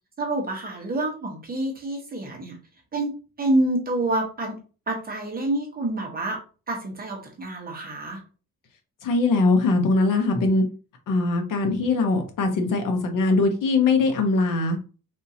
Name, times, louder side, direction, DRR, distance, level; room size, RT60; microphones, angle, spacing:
voice 1, 0.2-2.6 2.9-4.5 4.9-6.4 6.7-8.2, right 1 dB, 25° right, 0 dB, 0.9 m, -27 dB
voice 2, 9.0-10.6 11.1-14.8, left 3 dB, 60° left, 4 dB, 0.9 m, -21 dB
3.6 x 2.7 x 2.7 m, 0.35 s
cardioid pair, 160°, 36 cm